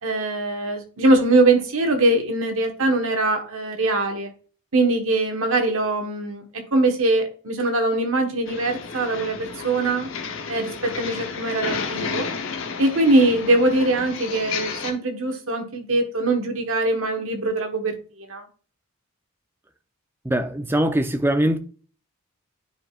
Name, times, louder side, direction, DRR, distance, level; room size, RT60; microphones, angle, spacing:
voice 1, 0.0-4.3 4.7-10.1 10.5-12.3 12.8-18.4, right 2 dB, 65° right, 1.3 m, -22 dB
sound 1, 8.5-14.9, left 5 dB, 60° left, 0.9 m, -32 dB
voice 2, 20.3-21.6, right 1 dB, 10° right, 0.5 m, -21 dB
10.0 x 4.6 x 2.4 m
head